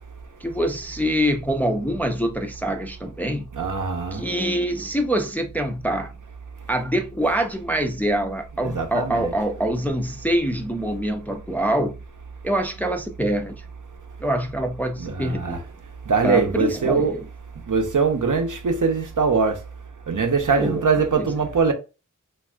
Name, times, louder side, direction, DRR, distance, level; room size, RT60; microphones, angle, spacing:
voice 1, 0.4-3.5 4.1-6.1 6.7-11.9 12.4-13.5 14.2-15.6 16.2-17.2 20.6-20.8 21.2-21.3, right 1 dB, 5° left, 0.3 m, -25 dB
voice 2, 3.5-4.3 6.6-6.7 8.6-9.3 15.0-17.2 17.5-19.7 20.1-21.7, right 5 dB, 70° right, 0.6 m, -23 dB
3.3 x 2.3 x 2.3 m
wide cardioid pair, 45°, 32 cm